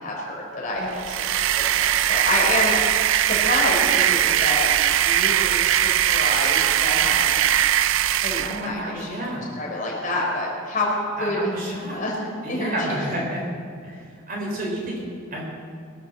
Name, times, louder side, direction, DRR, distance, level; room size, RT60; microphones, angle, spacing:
voice 1, 0.0-2.8 3.2-4.7 5.0-7.4 8.2-11.5 11.9-13.0, left 1 dB, 40° left, -3 dB, 4.0 m, -28 dB
sound 1, 0.9-8.7, right 11 dB, 70° right, 0.4 m, -20 dB
voice 2, 8.4-9.4 11.2-12.0 12.4-13.5 13.8-14.0 14.3-15.0 15.3-15.4, right 1 dB, 45° right, -2 dB, 4.2 m, -30 dB
22.0 x 7.6 x 7.5 m, 2.2 s
head